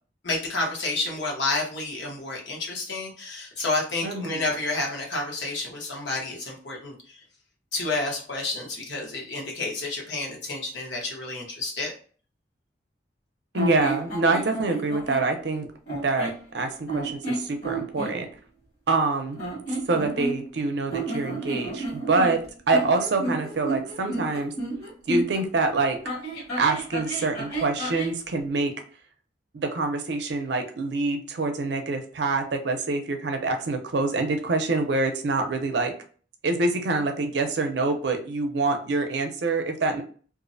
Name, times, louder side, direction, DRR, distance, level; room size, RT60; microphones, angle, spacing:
voice 1, 0.2-7.2 7.7-11.9, left 2 dB, 80° left, -1 dB, 0.9 m, -30 dB
voice 2, 4.0-4.4 13.5-18.3 18.9-19.4 19.9-22.4 22.7-24.5 25.1-26.0 26.6-28.7 29.5-35.9 36.4-40.0, right 3 dB, 70° right, 5 dB, 0.5 m, -26 dB
sound 1, 13.5-15.3 15.9-16.4 16.9-18.2 19.3-20.6 20.9-25.4 26.0-28.2, right 2 dB, 60° left, 1.2 m, -31 dB
2.4 x 2.0 x 2.6 m, 0.42 s
head